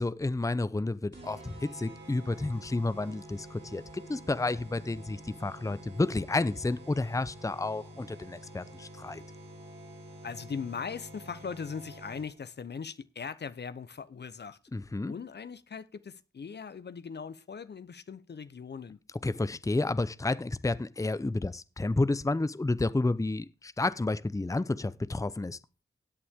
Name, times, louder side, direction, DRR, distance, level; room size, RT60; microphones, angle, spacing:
voice 1, 0.0-9.2 14.7-15.1 19.2-25.6, left 2 dB, 15° left, 0.7 m, -31 dB
sound 1, 1.1-12.5, right 1 dB, 60° right, 5.1 m, -48 dB
voice 2, 10.2-14.6 15.0-19.0, left 6 dB, 55° left, 0.8 m, -40 dB
13.5 x 8.5 x 3.6 m
cardioid pair, 40°, 20 cm